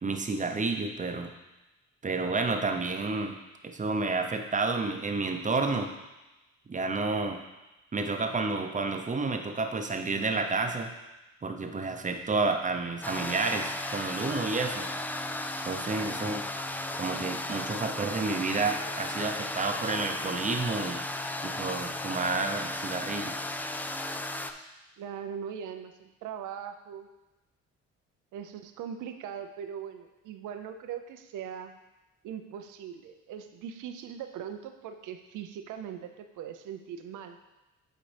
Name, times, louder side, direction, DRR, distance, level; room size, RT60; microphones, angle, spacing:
voice 1, 0.0-1.3 2.0-3.4 3.6-5.9 6.7-7.4 7.9-10.9 11.4-14.9 15.7-16.4 17.0-21.0 21.4-23.3, right 3 dB, 25° right, 4 dB, 0.7 m, -30 dB
sound 1, 13.0-24.5, left 1 dB, 5° left, 0.3 m, -35 dB
voice 2, 25.0-27.1 28.3-31.7 32.2-37.4, right 8 dB, 80° right, 8 dB, 0.6 m, -40 dB
8.9 x 4.2 x 3.4 m, 1.0 s
cardioid pair, 90°, 30 cm